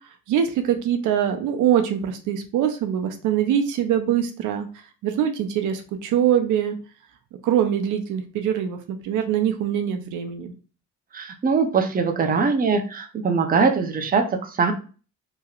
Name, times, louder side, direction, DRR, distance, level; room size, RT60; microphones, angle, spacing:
voice 1, 0.3-4.7 5.0-6.8 7.4-10.5, right 9 dB, 85° right, 6 dB, 0.6 m, -23 dB
voice 2, 11.1-14.7, right 5 dB, 30° right, 5 dB, 0.6 m, -22 dB
2.9 x 2.9 x 2.3 m, 0.36 s
cardioid pair, 90°, 30 cm